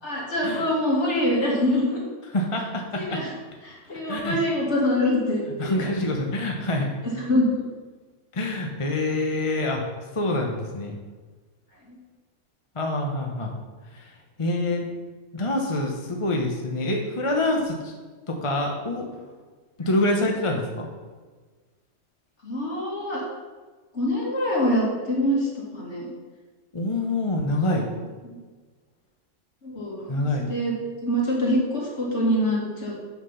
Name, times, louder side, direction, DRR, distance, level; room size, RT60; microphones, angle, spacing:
voice 1, 0.0-2.0 2.9-3.3 3.6-5.8 7.2-7.6 22.4-23.2 23.9-26.1 28.2-28.4 29.6-30.7 31.0-32.9, left 1 dB, 60° left, -4 dB, 2.8 m, -25 dB
voice 2, 2.3-3.2 4.1-4.4 5.6-6.9 8.3-9.8 10.1-11.0 12.7-13.5 13.9-14.1 14.4-14.8 15.3-17.9 18.3-19.1 19.8-20.9 26.7-27.8 30.1-30.5, left 1 dB, 25° left, 1 dB, 1.0 m, -26 dB
8.4 x 6.0 x 5.7 m, 1.4 s
omnidirectional pair, 1.3 m